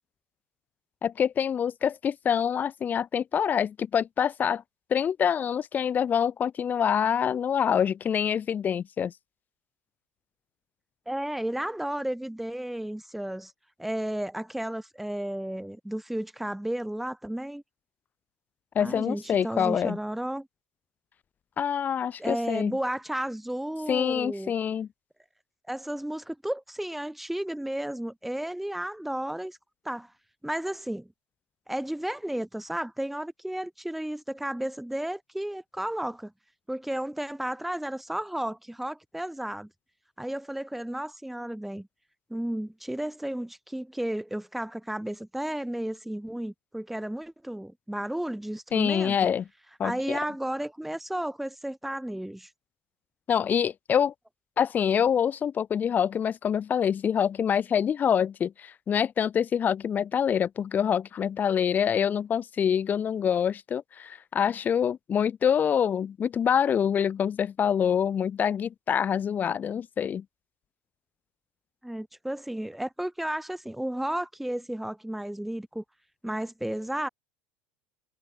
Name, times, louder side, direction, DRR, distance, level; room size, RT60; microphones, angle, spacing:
voice 1, 1.0-4.6 4.9-9.1 18.7-20.0 21.6-22.7 23.9-24.9 48.7-49.5 49.8-50.2 53.3-54.1 54.6-70.2, left 8 dB, 35° left, 6.5 m, -26 dB
voice 2, 11.0-13.5 13.8-17.6 18.8-20.5 22.2-24.5 25.7-29.6 29.8-30.1 30.4-31.1 31.7-36.3 36.7-39.7 40.2-41.9 42.3-49.2 49.8-52.5 71.8-75.8 76.2-77.1, right 1 dB, 5° right, 3.4 m, -33 dB
supercardioid pair, 110°, 5 cm